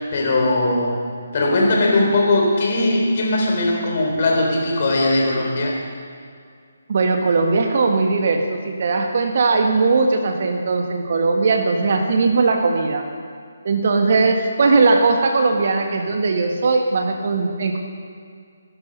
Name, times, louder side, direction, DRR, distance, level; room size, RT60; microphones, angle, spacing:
voice 1, 0.1-1.1 1.3-5.7, left 2 dB, 40° left, -1 dB, 4.0 m, -19 dB
voice 2, 6.9-13.0 13.6-17.8, right 3 dB, 45° right, 4 dB, 1.7 m, -19 dB
19.0 x 11.5 x 5.5 m, 2.2 s
figure-of-eight pair, 140°, 0 cm